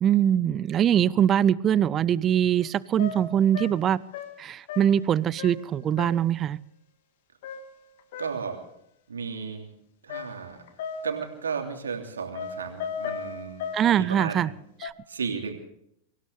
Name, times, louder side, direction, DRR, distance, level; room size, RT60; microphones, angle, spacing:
voice 1, 0.0-4.0 4.4-6.6 13.7-14.5 14.8-14.9, right 9 dB, 30° right, 22 dB, 0.6 m, -23 dB
sound 1, 2.6-2.7 3.0-5.1 5.4-5.7 6.0-6.4 7.4-8.5 10.1-11.3 12.3-14.0 14.8-14.9, left 6 dB, 55° left, 1.9 m, -37 dB
voice 2, 8.2-8.6 9.1-9.7 10.0-10.6 11.0-14.5 15.1-15.5, right 5 dB, 70° right, 4 dB, 2.9 m, -34 dB
25.0 x 16.5 x 3.5 m, 0.72 s
figure-of-eight pair, 90°, 0 cm